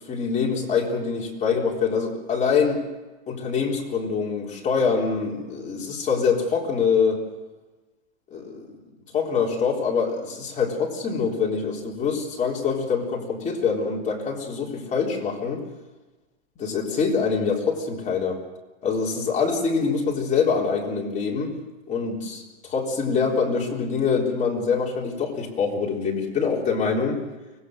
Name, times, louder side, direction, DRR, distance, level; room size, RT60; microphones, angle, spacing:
voice 1, 0.0-2.8 3.3-7.2 8.3-8.7 9.1-15.6 16.6-18.4 18.8-21.5 21.9-22.4 22.7-27.2, left 5 dB, 20° left, -2 dB, 3.9 m, -24 dB
24.5 x 19.5 x 6.6 m, 1.2 s
supercardioid pair, 145°, 34 cm